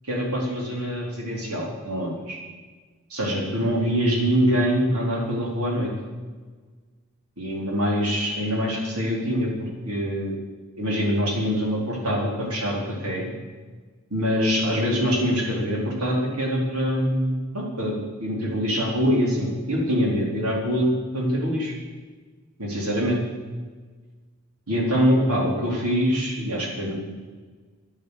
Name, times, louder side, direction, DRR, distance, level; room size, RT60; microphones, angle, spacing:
voice 1, 0.0-2.4 3.1-5.9 7.4-10.3 10.8-13.3 14.1-21.7 22.6-23.2 24.7-26.9, equal, 85° right, -2 dB, 4.3 m, -24 dB
11.0 x 10.5 x 8.3 m, 1.4 s
head